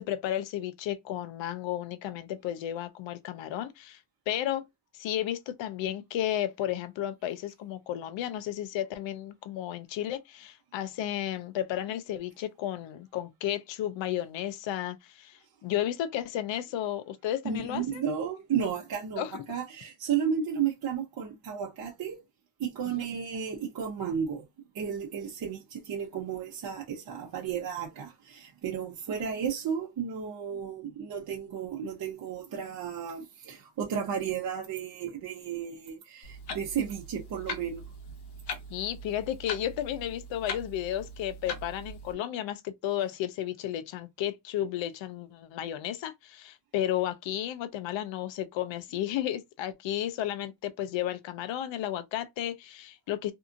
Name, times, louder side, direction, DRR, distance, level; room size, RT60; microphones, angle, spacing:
voice 1, 0.0-4.0 4.3-4.6 4.9-18.0 19.2-19.4 23.0-23.1 38.7-53.3, left 12 dB, 80° left, 0.5 m, -33 dB
voice 2, 17.4-22.2 22.6-24.4 24.7-37.8, right 7 dB, 50° right, 0.8 m, -33 dB
Clock, 36.2-42.1, left 2 dB, 65° left, 0.9 m, -41 dB
2.7 x 2.4 x 2.4 m
cardioid pair, 120°, 44 cm